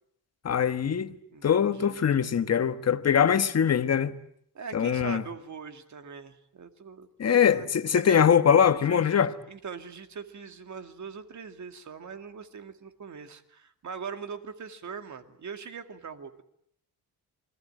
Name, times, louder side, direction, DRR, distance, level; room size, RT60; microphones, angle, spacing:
voice 1, 0.4-1.2 1.4-4.1 4.7-5.2 7.2-9.3, left 8 dB, 40° left, 1.3 m, -22 dB
voice 2, 1.3-2.0 4.5-7.7 8.0-8.2 8.8-16.4, right 6 dB, 45° right, 2.3 m, -41 dB
28.0 x 21.5 x 8.8 m
cardioid pair, 140°, 39 cm